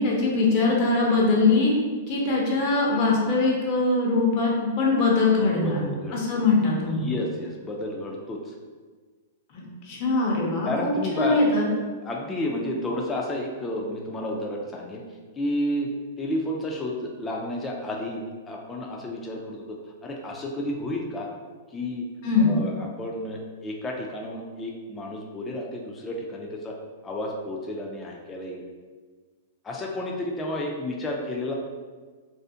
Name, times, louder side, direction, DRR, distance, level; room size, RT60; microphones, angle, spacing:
voice 1, 0.0-1.7 2.1-7.0 9.5-11.7 22.2-22.5, left 3 dB, 45° left, -2 dB, 0.7 m, -22 dB
voice 2, 5.6-6.4 6.9-8.5 10.7-11.4 12.0-15.0 15.4-15.9 16.2-19.8 20.0-21.3 21.7-22.0 22.5-26.7 27.0-28.6 29.6-31.5, left 1 dB, 15° left, -1 dB, 0.3 m, -31 dB
2.5 x 2.5 x 2.4 m, 1.4 s
hypercardioid pair, 135°, 0 cm